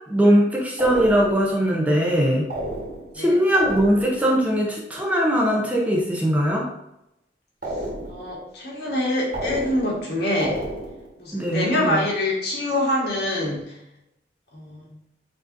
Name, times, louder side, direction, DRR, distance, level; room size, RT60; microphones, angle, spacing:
voice 1, 0.1-2.5 3.1-6.7 11.3-12.1, equal, 10° right, -2 dB, 0.6 m, -20 dB
sound 1, 0.8-1.5 2.5-3.2 3.5-4.3 7.6-8.3 9.3-10.1 10.4-11.1, right 1 dB, 55° right, 1.2 m, -32 dB
voice 2, 8.1-10.6 11.2-13.7 14.5-14.9, left 1 dB, 65° left, -4 dB, 1.4 m, -25 dB
5.8 x 2.7 x 2.5 m, 0.84 s
head